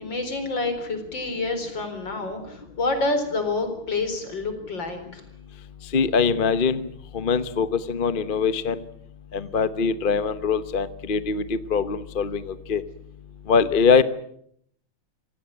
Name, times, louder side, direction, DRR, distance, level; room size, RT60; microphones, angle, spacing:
voice 1, 0.0-5.2, left 3 dB, 55° left, 8 dB, 5.0 m, -28 dB
voice 2, 5.9-6.9 7.1-8.8 9.3-12.8 13.5-14.0, left 5 dB, 40° left, 13 dB, 0.7 m, -22 dB
26.5 x 17.5 x 8.9 m, 0.70 s
omnidirectional pair, 2.4 m